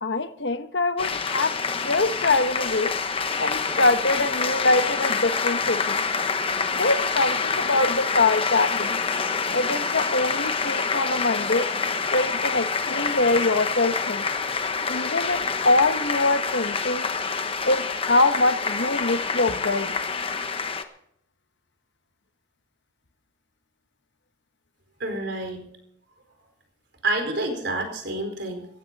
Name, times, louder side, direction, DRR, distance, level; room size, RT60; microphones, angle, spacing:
voice 1, 0.0-1.6 1.8-3.0 3.4-6.0 6.7-9.0 9.5-11.7 12.1-14.3 14.9-17.1 17.7-19.9, left 2 dB, 60° left, 1.1 m, -24 dB
sound 1, 1.0-20.8, left 5 dB, 30° left, 1.0 m, -27 dB
voice 2, 25.0-25.6 27.0-28.7, right 2 dB, 60° right, 4.5 m, -28 dB
17.5 x 15.0 x 4.1 m
head